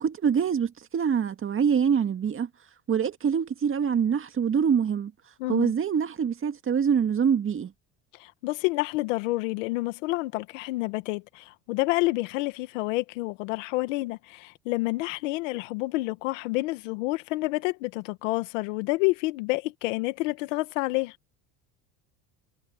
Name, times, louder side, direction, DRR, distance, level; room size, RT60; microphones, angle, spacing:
voice 1, 0.0-2.5 2.9-5.1 5.5-7.7, right 7 dB, 35° right, 2.0 m, -25 dB
voice 2, 5.4-5.7 8.2-21.2, left 21 dB, 90° left, 1.7 m, -29 dB
supercardioid pair, 100°, 37 cm